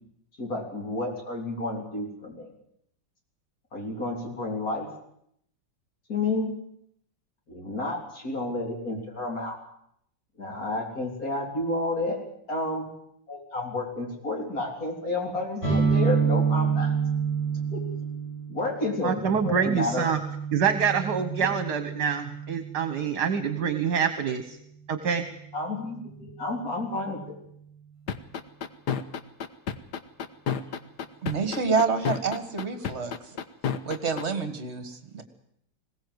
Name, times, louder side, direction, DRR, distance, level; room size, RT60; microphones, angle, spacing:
voice 1, 0.4-2.5 3.7-4.9 6.1-6.5 7.5-9.6 10.4-12.2 12.5-12.9 13.3-16.9 17.7-17.8 18.5-20.1 21.4-21.5 25.5-27.2, left 2 dB, 45° left, 1 dB, 4.2 m, -31 dB
sound 1, 15.6-23.2, right 6 dB, 15° left, 7.1 m, -28 dB
voice 2, 19.0-20.2 20.5-24.6 24.9-25.2, right 7 dB, 60° right, 10 dB, 1.7 m, -26 dB
sound 2, 28.1-34.2, left 8 dB, 65° left, 1.6 m, -29 dB
voice 3, 31.2-33.1 33.9-35.2, right 5 dB, 35° right, 10 dB, 2.0 m, -28 dB
20.5 x 18.0 x 8.0 m, 0.71 s
omnidirectional pair, 2.1 m